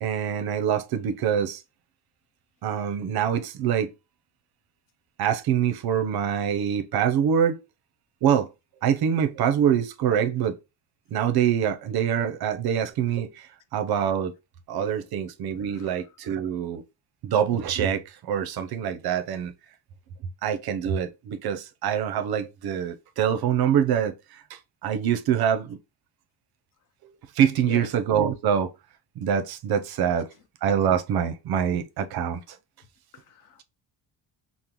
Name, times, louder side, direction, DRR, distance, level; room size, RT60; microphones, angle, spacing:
voice 1, 0.0-1.6 2.6-3.9 5.2-7.6 8.2-8.5 8.8-10.6 11.1-13.5 13.7-14.3 14.7-16.8 17.2-19.5 20.4-24.1 24.8-25.8 27.0-28.7 29.2-30.3 30.6-32.4, right 8 dB, 55° right, 0.6 m, -25 dB
voice 2, 15.6-16.1 27.7-27.9 30.0-30.1 33.1-33.6, left 7 dB, 45° left, 0.6 m, -42 dB
5.3 x 2.1 x 2.9 m
cardioid pair, 155°, 44 cm